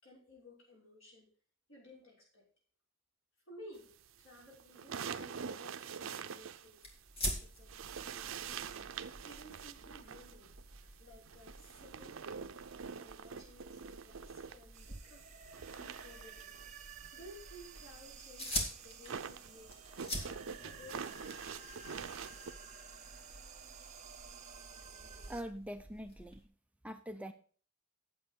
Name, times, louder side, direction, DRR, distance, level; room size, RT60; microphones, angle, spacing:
voice 1, 0.0-1.3 1.7-2.5 3.5-6.8 7.4-8.7 9.2-10.6 11.0-12.6 12.9-16.6 17.1-19.7 20.1-21.9 23.0-23.1, left 1 dB, 75° left, -3 dB, 5.9 m, -57 dB
sound 1, 4.1-7.3 7.6-14.9 15.2-22.5, right 6 dB, 75° right, 0.6 m, -46 dB
sound 2, 6.8-26.4, equal, 30° left, 2.3 m, -47 dB
sound 3, 14.7-25.4, right 6 dB, 35° right, 1.2 m, -53 dB
voice 2, 25.3-26.5 26.8-27.3, equal, 5° right, 7 dB, 0.6 m, -44 dB
9.3 x 7.3 x 5.2 m, 0.43 s
head